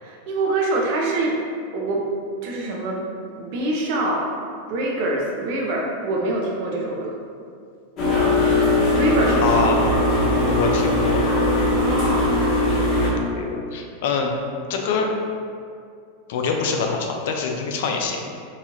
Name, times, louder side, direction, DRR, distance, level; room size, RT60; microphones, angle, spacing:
voice 1, 0.0-1.4 1.7-2.1 2.4-3.0 3.4-4.2 4.7-7.1 8.9-9.5 11.7-12.3, right 2 dB, 60° right, -2 dB, 0.6 m, -24 dB
sound 1, 8.0-13.1, left 2 dB, 35° left, 0.9 m, -20 dB
voice 2, 9.4-9.8 10.5-11.2 12.7-14.3 14.7-15.1 16.3-18.2, left 5 dB, 70° left, 2 dB, 0.4 m, -25 dB
2.9 x 2.3 x 3.0 m, 2.3 s
supercardioid pair, 125°, 0 cm